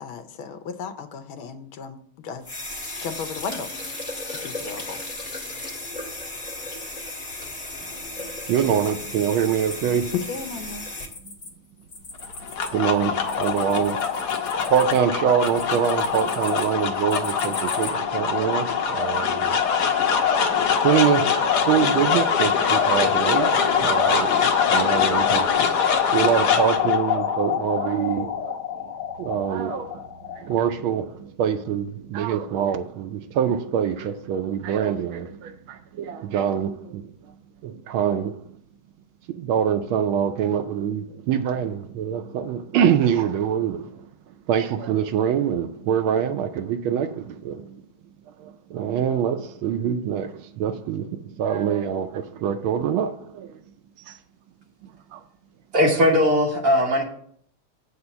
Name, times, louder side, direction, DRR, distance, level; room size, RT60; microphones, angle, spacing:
voice 1, 0.0-2.4 3.0-3.7 4.3-5.0 10.2-10.9, left 5 dB, 75° left, 1.6 m, -35 dB
sound 1, 2.4-11.1, left 2 dB, 25° left, 1.7 m, -35 dB
voice 2, 8.5-10.1 12.7-14.1 14.7-19.6 20.8-28.8 29.2-37.1 37.6-38.4 39.3-44.0 44.5-47.8 48.4-53.6 54.1-54.2 55.1-55.2, right 8 dB, 75° right, 1.4 m, -25 dB
sound 2, 9.7-11.5 11.8-17.9, left 3 dB, 40° left, 1.9 m, -40 dB
sound 3, 12.2-30.6, left 7 dB, 60° left, 1.3 m, -23 dB
voice 3, 55.7-57.0, left 1 dB, 45° right, 1.9 m, -19 dB
8.5 x 4.4 x 6.9 m
omnidirectional pair, 2.4 m